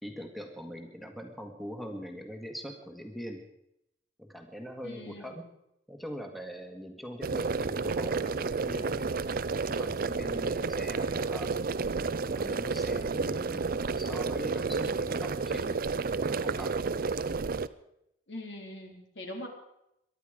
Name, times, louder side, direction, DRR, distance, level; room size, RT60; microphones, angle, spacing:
voice 1, 0.0-3.4 4.2-5.4 5.9-9.2 9.6-11.5 12.2-16.9, equal, ahead, 3 dB, 1.7 m, -42 dB
voice 2, 4.8-5.4 18.3-19.5, left 1 dB, 75° left, 2 dB, 3.8 m, -42 dB
sound 1, 7.2-17.7, right 4 dB, 50° right, 0.6 m, -31 dB
23.5 x 11.5 x 5.1 m, 0.81 s
head